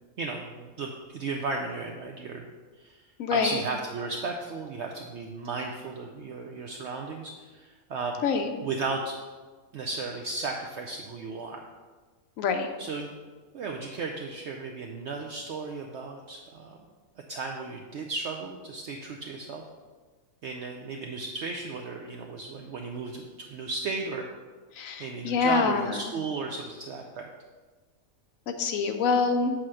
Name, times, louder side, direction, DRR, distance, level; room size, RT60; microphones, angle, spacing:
voice 1, 0.2-2.5 2.8-8.2 8.6-9.2 9.7-11.6 12.8-13.1 13.5-16.8 17.3-19.6 20.4-24.3 25.0-27.3, right 3 dB, 65° right, 2 dB, 0.8 m, -35 dB
voice 2, 12.4-12.7 24.8-26.0 28.5-29.5, left 5 dB, 75° left, 6 dB, 1.0 m, -25 dB
8.0 x 2.9 x 6.2 m, 1.4 s
omnidirectional pair, 1.5 m